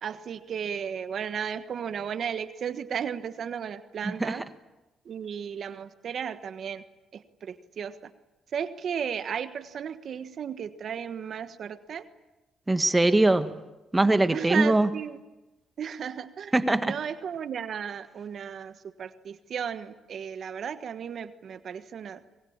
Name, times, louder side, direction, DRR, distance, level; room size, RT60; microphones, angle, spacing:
voice 1, 0.0-4.4 5.0-6.8 7.1-7.9 8.5-12.0 14.3-15.2 15.8-16.5 16.8-18.7 19.0-22.2, right 7 dB, 60° right, 10 dB, 1.4 m, -34 dB
voice 2, 4.0-4.4 12.7-13.6 13.9-14.9 16.5-17.0, right 2 dB, 15° right, 10 dB, 1.5 m, -22 dB
24.5 x 22.5 x 8.8 m, 1.1 s
cardioid pair, 90°, 0 cm